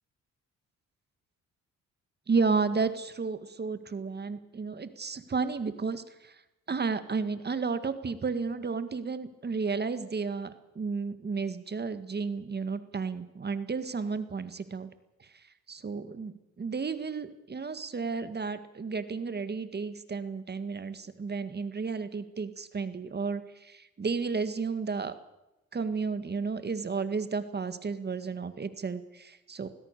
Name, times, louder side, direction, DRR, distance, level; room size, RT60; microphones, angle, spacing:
voice 1, 2.3-6.4 6.7-14.9 15.3-25.1 25.7-29.7, right 4 dB, 35° right, 11 dB, 1.9 m, -32 dB
20.5 x 19.5 x 6.8 m, 0.94 s
cardioid pair, 90°, 30 cm